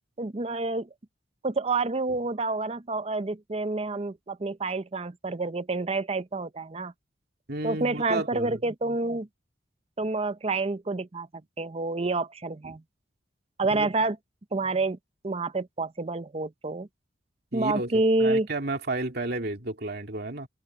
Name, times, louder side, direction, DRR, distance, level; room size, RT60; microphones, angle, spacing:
voice 1, 0.2-0.9 1.4-6.9 7.6-9.3 10.0-11.3 11.6-12.8 13.6-14.2 14.5-15.0 15.2-16.9 17.5-18.5, right 3 dB, 30° right, 0.6 m, -28 dB
voice 2, 7.5-8.6 10.0-10.1 12.6-12.8 13.7-13.9 17.5-20.5, right 2 dB, 55° right, 2.7 m, -32 dB
head